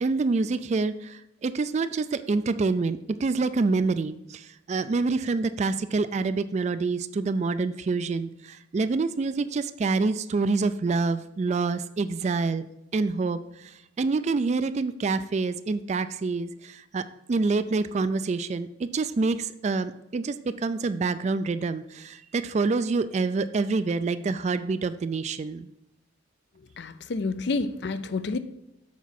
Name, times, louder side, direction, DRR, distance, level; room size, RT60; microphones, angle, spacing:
voice 1, 0.0-12.7 12.9-25.7, right 3 dB, 35° right, 0.3 m, -27 dB
voice 2, 26.8-28.4, left 3 dB, 60° left, 0.5 m, -29 dB
7.3 x 4.5 x 5.8 m
head